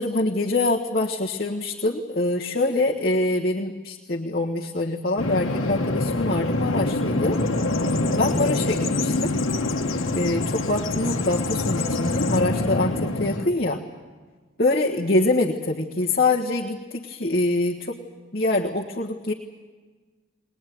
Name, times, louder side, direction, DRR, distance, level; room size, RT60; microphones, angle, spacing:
voice 1, 0.0-7.4 8.2-9.3 10.1-13.8 14.6-18.0 18.3-19.3, left 2 dB, 45° left, -2 dB, 1.5 m, -24 dB
Bird vocalization bird call bird song, 5.2-13.5, left 2 dB, 80° left, 1.5 m, -25 dB
21.0 x 21.0 x 9.3 m, 1.4 s
head